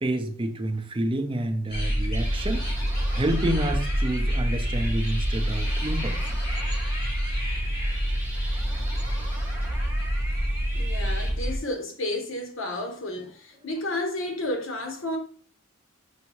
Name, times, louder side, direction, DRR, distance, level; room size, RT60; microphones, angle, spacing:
voice 1, 0.0-2.6 3.1-6.2, right 1 dB, 25° right, 0.5 m, -28 dB
sound 1, 1.7-11.6, equal, 45° left, 1.8 m, -27 dB
sound 2, 2.1-11.3, right 1 dB, 10° right, 1.0 m, -40 dB
voice 2, 10.7-15.2, left 1 dB, 70° left, 1.0 m, -31 dB
5.6 x 2.7 x 3.0 m
head